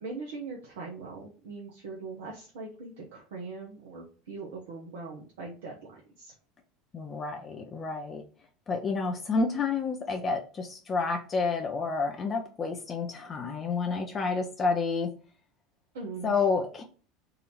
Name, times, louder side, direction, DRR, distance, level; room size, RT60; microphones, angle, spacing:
voice 1, 0.0-5.8 6.2-6.3 15.9-16.3, right 4 dB, 75° right, -2 dB, 1.0 m, -41 dB
voice 2, 6.9-8.2 8.7-15.1 16.2-16.8, left 4 dB, 35° left, 3 dB, 0.7 m, -29 dB
4.0 x 2.7 x 4.2 m, 0.39 s
hypercardioid pair, 80°, 0 cm